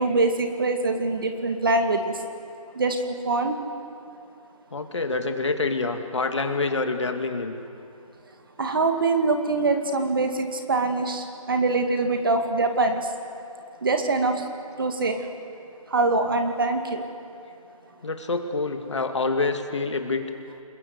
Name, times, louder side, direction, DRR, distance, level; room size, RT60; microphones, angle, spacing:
voice 1, 0.0-2.2 2.8-3.6 8.6-13.1 13.8-14.4 14.8-15.2 15.9-17.0, right 3 dB, 40° right, 5 dB, 2.1 m, -24 dB
voice 2, 4.7-7.6 18.0-20.2, left 3 dB, 50° left, 5 dB, 2.4 m, -26 dB
28.5 x 21.5 x 8.2 m, 2.6 s
figure-of-eight pair, 165°, 19 cm